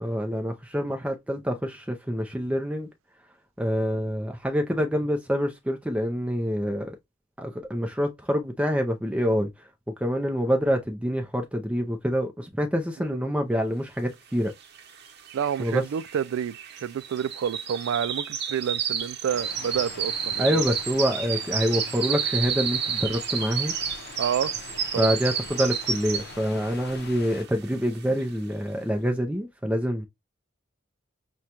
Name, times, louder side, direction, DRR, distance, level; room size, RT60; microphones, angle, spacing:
voice 1, 0.0-2.9 3.6-7.0 7.4-9.7 10.0-14.5 15.6-15.8 20.4-23.7 25.0-30.1, equal, 5° right, 0.4 m, -26 dB
sound 1, 14.8-14.9 15.1-26.5 26.9-27.2 27.7-27.8, right 7 dB, 55° right, 0.9 m, -30 dB
voice 2, 15.3-20.6 24.2-24.5 24.9-25.2, right 8 dB, 80° right, 0.3 m, -29 dB
sound 2, 19.3-27.4, left 4 dB, 55° left, 0.7 m, -43 dB
6.1 x 2.2 x 2.8 m
head